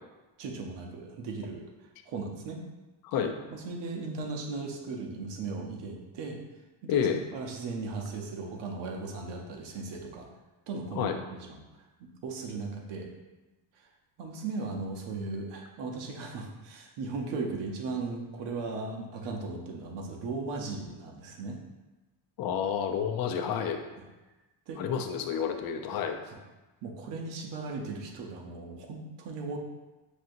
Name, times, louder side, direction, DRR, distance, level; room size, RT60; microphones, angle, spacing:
voice 1, 0.4-1.6 2.1-2.6 3.5-6.4 6.8-7.1 7.3-10.3 10.7-11.6 12.0-13.1 13.8-13.9 14.2-21.6 24.7-24.8 26.3-26.4 26.8-29.6, right 3 dB, 70° right, 1 dB, 0.8 m, -37 dB
voice 2, 6.9-7.2 11.0-11.2 22.4-23.8 24.8-26.2, left 7 dB, 55° left, 5 dB, 0.5 m, -29 dB
6.1 x 2.8 x 2.5 m, 1.1 s
cardioid pair, 155°, 44 cm